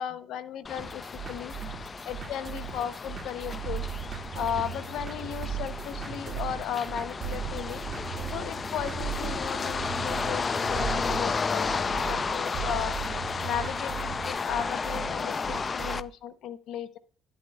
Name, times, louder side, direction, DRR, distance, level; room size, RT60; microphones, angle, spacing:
voice 1, 0.0-1.0 1.3-1.5 2.1-3.8 4.3-7.8 8.3-13.0 13.4-17.0, left 9 dB, 70° left, 14 dB, 0.7 m, -35 dB
sound 1, 0.6-16.0, left 5 dB, 35° left, 0.3 m, -33 dB
sound 2, 0.8-16.0, right 7 dB, 30° right, 1.8 m, -41 dB
sound 3, 3.7-6.8 7.2-11.6 11.9-14.3, right 9 dB, 60° right, 1.6 m, -38 dB
10.5 x 8.5 x 2.2 m, 0.43 s
supercardioid pair, 85°, 0 cm